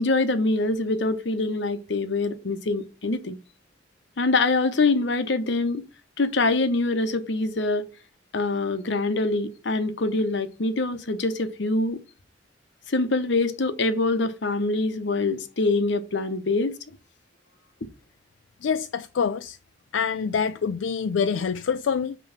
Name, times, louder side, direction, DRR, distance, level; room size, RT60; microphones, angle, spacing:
voice 1, 0.0-3.4 4.2-5.8 6.2-7.9 8.3-12.0 12.9-16.8, left 3 dB, 70° left, 0.9 m, -24 dB
voice 2, 18.6-19.6 19.9-22.2, left 6 dB, 85° left, 0.4 m, -26 dB
8.8 x 3.1 x 5.7 m
head